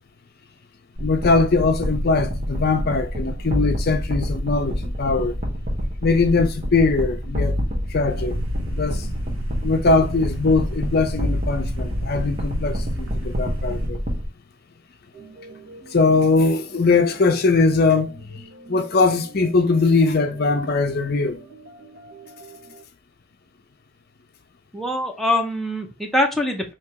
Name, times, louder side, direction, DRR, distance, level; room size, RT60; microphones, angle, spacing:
voice 1, 1.0-5.4 6.0-7.6 7.9-8.4 8.7-9.1 9.6-14.0 15.9-21.4, left 3 dB, 45° left, 0.5 m, -21 dB
sound 1, 1.0-14.3, equal, 35° right, 1.2 m, -27 dB
sound 2, 8.1-13.9, equal, 75° right, 1.1 m, -32 dB
sound 3, 15.1-22.8, right 3 dB, 50° right, 2.1 m, -45 dB
voice 2, 24.7-26.7, left 1 dB, ahead, 0.6 m, -23 dB
3.4 x 2.9 x 4.6 m
head